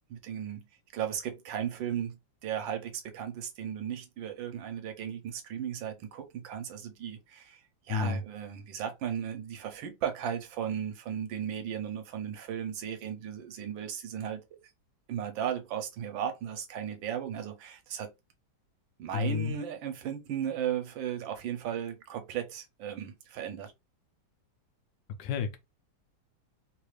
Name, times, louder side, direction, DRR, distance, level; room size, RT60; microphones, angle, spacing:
voice 1, 0.1-0.7 0.9-7.6 7.9-14.4 15.1-18.1 19.0-23.7, right 9 dB, 80° right, 1.4 m, -36 dB
voice 2, 7.9-8.2 19.1-19.6 25.2-25.6, left 6 dB, 75° left, 1.2 m, -30 dB
3.4 x 2.4 x 3.1 m
omnidirectional pair, 2.1 m